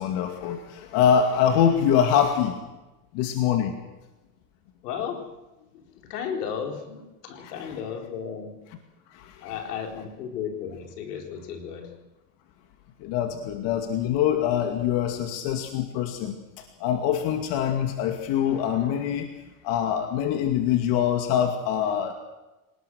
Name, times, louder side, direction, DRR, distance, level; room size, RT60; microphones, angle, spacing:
voice 1, 0.0-2.6 3.1-3.7 7.4-7.5 9.1-9.5 13.0-16.4 16.8-19.3 19.6-22.1, left 9 dB, 60° left, 4 dB, 2.4 m, -24 dB
voice 2, 4.8-5.3 5.7-5.8 6.1-8.6 9.4-11.9, left 7 dB, 90° left, 3 dB, 4.4 m, -34 dB
27.0 x 19.0 x 6.4 m, 1.1 s
supercardioid pair, 120°, 46 cm